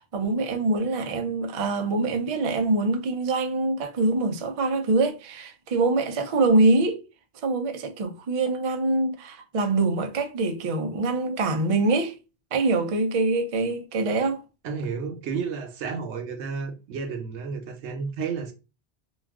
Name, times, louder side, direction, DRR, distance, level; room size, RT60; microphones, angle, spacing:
voice 1, 0.0-7.0 7.4-12.2 12.5-14.4, right 3 dB, 55° right, 0.3 m, -24 dB
voice 2, 14.6-18.5, right 5 dB, 90° right, 0.9 m, -32 dB
2.3 x 2.3 x 3.5 m
omnidirectional pair, 1.1 m